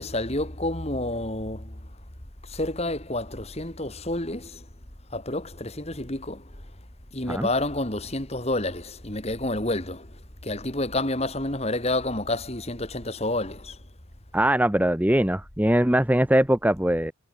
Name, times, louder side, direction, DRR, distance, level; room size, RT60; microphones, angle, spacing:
voice 1, 0.0-1.7 2.5-4.6 5.1-6.4 7.1-10.1 10.4-13.7, left 2 dB, 30° left, 3.0 m, -29 dB
voice 2, 14.3-17.1, right 1 dB, 10° right, 0.9 m, -21 dB
head